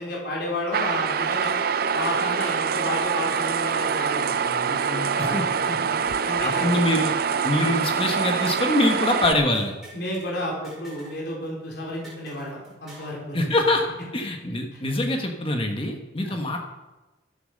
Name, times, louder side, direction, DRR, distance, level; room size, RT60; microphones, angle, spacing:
voice 1, 0.0-1.5 1.9-5.4 5.7-5.8 6.2-6.8 9.9-13.6 16.2-16.4, left 1 dB, 60° left, -2 dB, 4.1 m, -32 dB
sound 1, 0.7-9.3, right 6 dB, 55° right, 0.5 m, -25 dB
voice 2, 6.4-7.1 7.4-9.7 13.3-13.9 14.1-16.6, left 1 dB, 30° left, 3 dB, 1.4 m, -24 dB
sound 2, 9.2-10.3 10.6-11.2 11.5-11.6 12.0-13.2, right 1 dB, 5° right, 6.5 m, -47 dB
13.0 x 10.5 x 6.6 m, 1.1 s
head